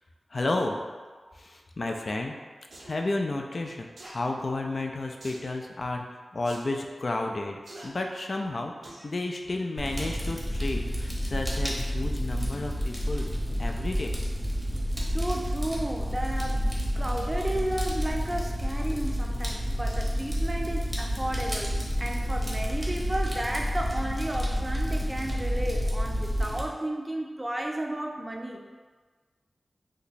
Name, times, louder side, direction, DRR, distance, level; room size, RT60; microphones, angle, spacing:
voice 1, 0.3-0.8 1.3-2.3 2.8-13.3 13.6-14.2, left 2 dB, 50° left, 2 dB, 0.3 m, -32 dB
sound 1, 2.7-2.9 4.0-4.2 5.2-5.5 6.4-6.6 7.6-7.9 8.8-9.1 9.6-9.7, right 1 dB, 80° right, 0.5 m, -46 dB
Fire, 9.8-26.6, equal, 5° right, 0.8 m, -29 dB
voice 2, 15.1-21.7 22.0-28.7, right 1 dB, 20° right, 1 dB, 0.4 m, -33 dB
2.9 x 2.2 x 3.9 m, 1.4 s
wide cardioid pair, 70°, 0 cm